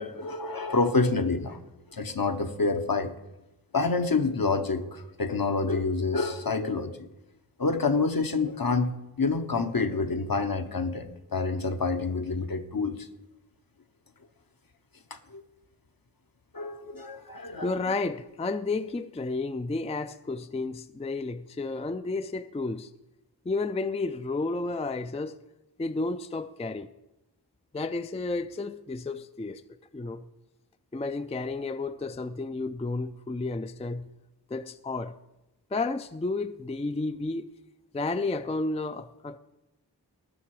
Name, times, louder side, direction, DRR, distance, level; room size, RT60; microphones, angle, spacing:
voice 1, 0.0-1.6 1.9-3.1 3.7-7.1 7.6-13.1 15.1-15.4 16.5-17.7, left 3 dB, 55° left, 1.0 m, -28 dB
voice 2, 17.6-22.9 23.5-25.4 25.8-26.9 27.7-29.6 29.9-30.3 30.9-34.1 34.5-35.1 35.7-37.5 37.9-39.4, left 3 dB, 15° left, 0.4 m, -32 dB
18.5 x 6.8 x 4.7 m
wide cardioid pair, 50°, 41 cm